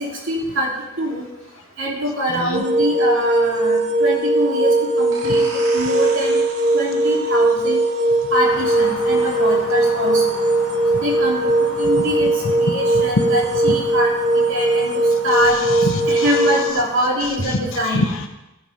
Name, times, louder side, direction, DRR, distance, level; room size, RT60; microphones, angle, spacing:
voice 1, 0.3-0.7 1.0-1.2 1.8-5.4 5.7-6.4 6.7-7.8 8.3-10.4 11.0-12.3 12.6-14.1 14.5-15.6 16.1-18.0, equal, 65° right, -3 dB, 3.1 m, -24 dB
voice 2, 2.3-2.6 12.9-13.0 13.7-13.8 15.6-16.2 17.8-18.3, left 2 dB, 65° left, 4 dB, 1.2 m, -25 dB
sound 1, 2.5-16.7, right 2 dB, 35° right, 0.6 m, -19 dB
sound 2, 5.1-10.5, right 2 dB, 85° right, 2.6 m, -38 dB
sound 3, 8.4-17.1, left 3 dB, 90° left, 1.7 m, -36 dB
15.0 x 6.0 x 5.2 m, 0.95 s
head